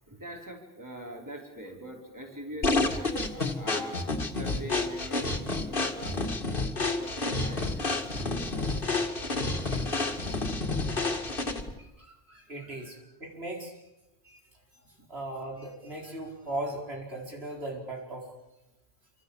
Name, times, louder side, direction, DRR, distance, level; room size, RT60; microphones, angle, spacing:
voice 1, 0.1-6.3 6.9-8.9 9.5-10.6 12.8-12.9 15.0-15.1, equal, 15° right, 0 dB, 5.0 m, -44 dB
sound 1, 2.6-11.8, left 2 dB, 55° left, 2.3 m, -30 dB
voice 2, 11.8-13.8 14.2-14.4 15.1-18.3, right 1 dB, 75° right, 0 dB, 5.2 m, -38 dB
27.5 x 25.5 x 7.5 m, 0.97 s
omnidirectional pair, 1.1 m